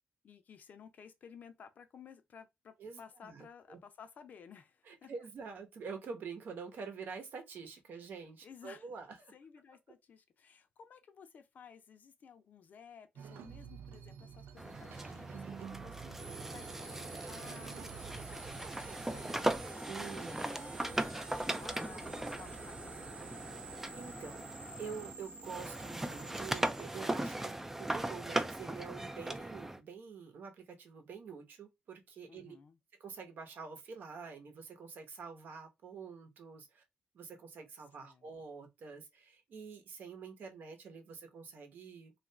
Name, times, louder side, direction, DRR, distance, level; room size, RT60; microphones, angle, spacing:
voice 1, 0.2-5.1 7.9-8.0 8.4-8.9 9.3-23.5 32.3-32.8 38.0-38.3, left 6 dB, 55° left, 0.5 m, -56 dB
voice 2, 2.8-3.8 4.9-9.3 16.0-16.5 19.8-20.8 23.7-32.6 33.0-36.8 37.1-42.1, right 5 dB, 65° right, 0.9 m, -47 dB
sound 1, 13.2-19.3, right 7 dB, 85° right, 0.5 m, -50 dB
sound 2, 14.6-25.1 25.4-29.8, right 1 dB, 10° right, 0.3 m, -39 dB
sound 3, 16.2-28.1, right 3 dB, 40° right, 0.9 m, -49 dB
2.8 x 2.5 x 3.3 m
cardioid pair, 130°, 3 cm